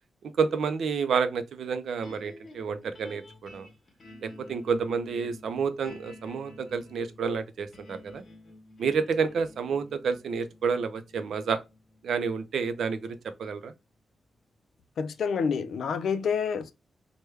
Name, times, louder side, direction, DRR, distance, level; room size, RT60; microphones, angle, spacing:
voice 1, 0.4-3.7 4.2-8.2 8.8-11.6 12.0-13.7, right 5 dB, 85° right, 0.4 m, -29 dB
sound 1, 2.0-14.3, left 2 dB, 45° left, 0.9 m, -52 dB
voice 2, 15.0-16.7, left 6 dB, 85° left, 0.3 m, -28 dB
3.2 x 2.2 x 3.2 m
wide cardioid pair, 125°, 0 cm